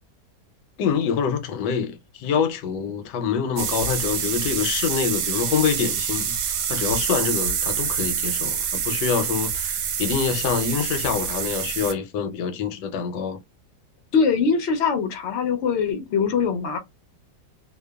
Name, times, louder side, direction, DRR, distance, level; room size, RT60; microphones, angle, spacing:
voice 1, 0.8-13.4, left 7 dB, 90° left, 1.2 m, -26 dB
sound 1, 3.6-11.9, right 7 dB, 70° right, 1.0 m, -26 dB
voice 2, 14.1-16.8, left 5 dB, 70° left, 0.6 m, -22 dB
2.8 x 2.2 x 2.2 m
omnidirectional pair, 1.8 m